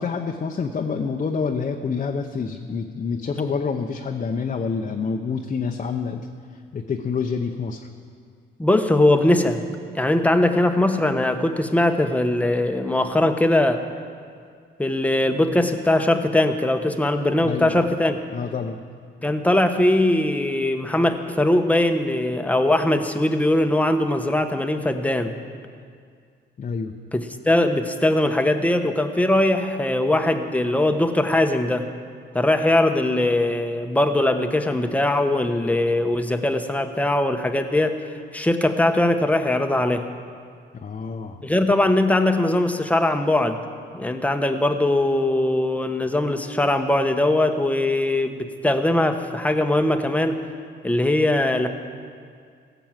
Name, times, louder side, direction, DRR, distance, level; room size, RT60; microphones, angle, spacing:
voice 1, 0.0-6.3 6.7-7.8 17.4-17.7 18.3-18.8 26.6-26.9 40.7-41.5, left 5 dB, 40° left, 3 dB, 0.8 m, -27 dB
voice 2, 8.6-9.6 9.9-13.8 14.8-18.2 19.2-25.3 27.1-31.9 32.3-38.0 38.3-40.1 41.4-43.6 43.9-50.4 50.8-51.7, left 1 dB, 5° left, 6 dB, 1.0 m, -21 dB
16.5 x 7.0 x 7.6 m, 2.2 s
cardioid pair, 90°, 20 cm